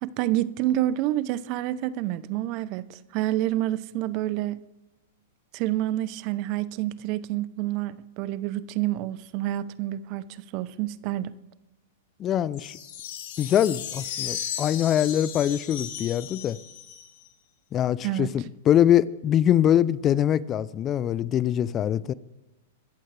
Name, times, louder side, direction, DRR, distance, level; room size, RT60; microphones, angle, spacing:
voice 1, 0.0-4.6 5.5-10.3 10.5-11.3 18.0-18.5, right 14 dB, 45° right, 0.8 m, -28 dB
voice 2, 12.2-12.7 13.4-16.6 17.7-22.1, left 10 dB, 30° left, 0.5 m, -23 dB
sound 1, 12.5-17.3, left 9 dB, 60° left, 3.2 m, -36 dB
24.5 x 14.0 x 3.4 m
hypercardioid pair, 110°, 0 cm